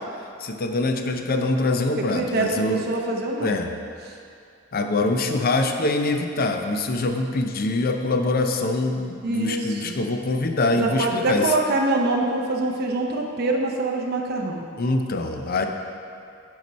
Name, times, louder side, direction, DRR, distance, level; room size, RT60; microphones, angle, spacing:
voice 1, 0.4-2.8 3.4-3.7 4.7-11.5 14.8-15.7, left 2 dB, 50° left, 5 dB, 0.5 m, -24 dB
voice 2, 2.1-3.6 4.0-4.1 9.2-10.0 10.7-14.7, right 2 dB, 50° right, 0 dB, 0.7 m, -25 dB
9.4 x 4.8 x 4.1 m, 2.4 s
head